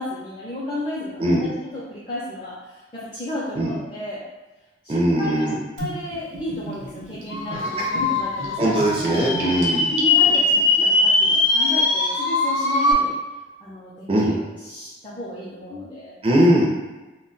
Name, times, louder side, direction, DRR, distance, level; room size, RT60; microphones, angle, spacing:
voice 1, 0.0-4.2 4.8-5.5 5.8-8.8 9.1-9.5 9.9-13.2 13.6-16.1, left 1 dB, 25° left, -8 dB, 0.5 m, -33 dB
voice 2, 4.9-5.6 7.5-7.9 8.6-9.8 14.1-14.3 16.2-16.7, right 1 dB, 30° right, -3 dB, 0.4 m, -20 dB
Gurgling / Bathtub (filling or washing), 5.8-10.8, right 1 dB, 75° right, 0.7 m, -34 dB
sound 1, 7.3-12.9, left 3 dB, 90° left, 0.4 m, -21 dB
2.2 x 2.0 x 3.8 m, 1.1 s
head